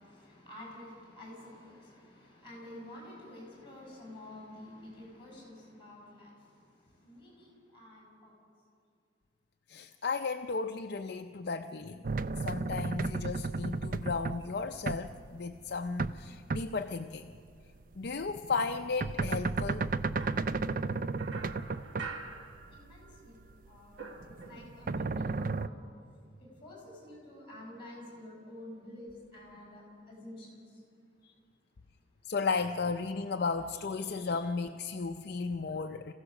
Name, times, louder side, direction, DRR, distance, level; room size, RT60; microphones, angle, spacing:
voice 1, 0.0-6.5 6.8-8.3 22.7-24.0 24.2-25.8 26.4-30.8, left 1 dB, 25° left, -1 dB, 6.5 m, -49 dB
voice 2, 9.7-12.0 12.4-17.3 18.0-19.9 32.2-36.1, left 4 dB, 55° left, 6 dB, 0.5 m, -34 dB
sound 1, 12.0-16.2 16.5-17.0 17.8-23.8 24.2-25.7, right 3 dB, 45° right, 0.5 m, -34 dB
sound 2, 20.2-23.2 23.5-25.0, right 4 dB, 65° right, 1.3 m, -46 dB
26.5 x 16.0 x 6.3 m, 2.3 s
head